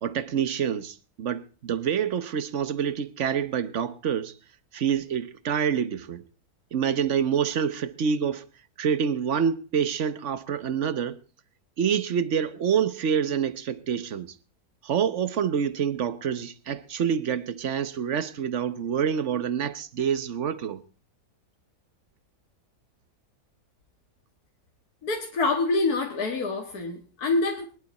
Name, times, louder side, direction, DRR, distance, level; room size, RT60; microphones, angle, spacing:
voice 1, 0.0-4.4 4.7-6.2 6.7-8.4 8.8-11.2 11.8-14.3 14.8-20.8, right 7 dB, 50° right, 1.1 m, -27 dB
voice 2, 25.0-27.7, left 3 dB, 65° left, 2.2 m, -26 dB
21.5 x 11.0 x 4.1 m
omnidirectional pair, 1.8 m